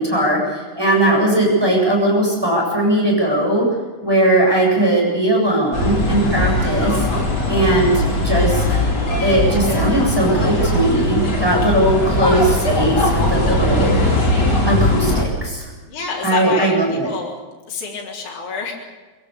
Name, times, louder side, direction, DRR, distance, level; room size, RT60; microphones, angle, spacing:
voice 1, 0.0-3.6 4.0-7.1 7.5-8.6 9.2-13.9 14.7-15.7 16.2-17.1, right 1 dB, 5° right, 0 dB, 7.7 m, -18 dB
sound 1, 5.7-15.2, left 1 dB, 25° left, 4.8 m, -19 dB
voice 2, 15.9-17.3 17.7-18.7, left 4 dB, 50° left, -2 dB, 5.0 m, -27 dB
23.5 x 16.5 x 8.4 m, 1.3 s
omnidirectional pair, 4.6 m